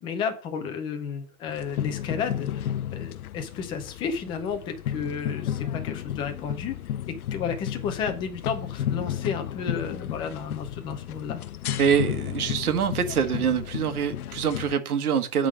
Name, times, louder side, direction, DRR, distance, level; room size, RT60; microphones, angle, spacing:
voice 1, 0.0-6.8 7.1-11.4, left 6 dB, 10° left, 6 dB, 0.6 m, -32 dB
sound 1, 1.5-14.7, left 10 dB, 85° left, 0.6 m, -33 dB
voice 2, 11.8-15.5, right 7 dB, 85° right, 9 dB, 1.5 m, -25 dB
8.0 x 3.8 x 6.5 m, 0.39 s
hypercardioid pair, 150°, 43 cm